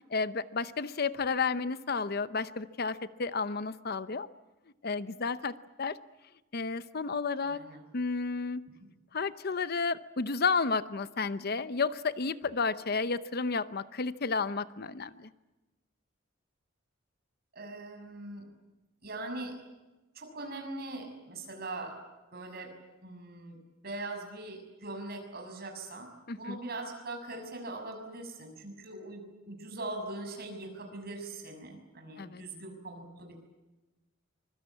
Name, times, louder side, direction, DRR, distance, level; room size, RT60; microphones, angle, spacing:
voice 1, 0.1-4.3 4.8-5.5 5.8-6.0 6.5-7.6 7.9-8.6 9.1-15.3 26.3-26.6 32.2-32.4, left 4 dB, 50° left, 14 dB, 0.8 m, -32 dB
voice 2, 7.4-7.8 17.5-18.4 19.0-19.5 20.1-21.9 22.3-22.7 23.0-23.6 23.8-26.1 26.4-33.4, right 2 dB, 50° right, 4 dB, 6.4 m, -41 dB
24.5 x 22.5 x 8.5 m, 1.1 s
head